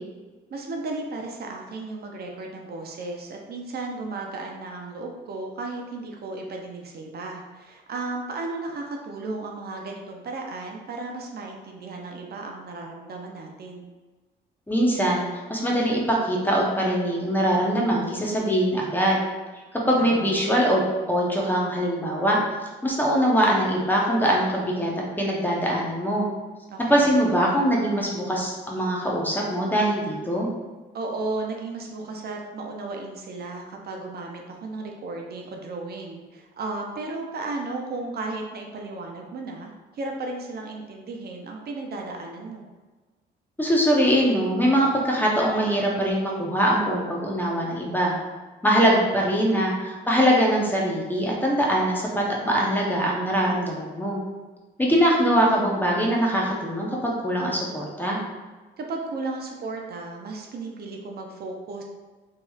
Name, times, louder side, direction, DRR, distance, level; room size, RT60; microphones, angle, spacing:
voice 1, 0.5-13.9 20.0-20.3 26.7-27.3 30.9-42.7 58.8-61.8, right 3 dB, 55° right, 1 dB, 0.5 m, -34 dB
voice 2, 14.7-19.2 19.9-22.4 22.8-26.3 26.9-30.5 43.6-48.1 48.6-54.2 54.8-58.2, equal, 10° left, -3 dB, 0.7 m, -22 dB
2.9 x 2.9 x 2.3 m, 1.3 s
cardioid pair, 90°, 20 cm